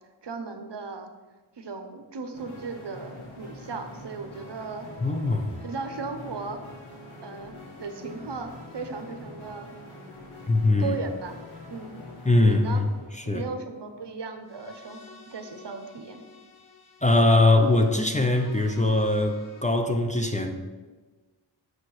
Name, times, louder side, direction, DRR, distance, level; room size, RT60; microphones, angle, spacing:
voice 1, 0.2-1.1 1.6-4.9 5.6-6.6 7.2-9.7 10.8-11.4 11.7-11.9 12.4-12.8 13.2-15.0 15.3-16.2, right 4 dB, 60° right, 7 dB, 0.9 m, -36 dB
sound 1, 2.3-19.6, left 2 dB, 75° left, 1.7 m, -46 dB
voice 2, 5.0-5.5 10.5-11.0 12.2-12.8 13.3-13.4 17.0-20.5, left 2 dB, 15° left, 4 dB, 0.6 m, -21 dB
6.6 x 4.4 x 6.3 m, 1.3 s
wide cardioid pair, 85°, 47 cm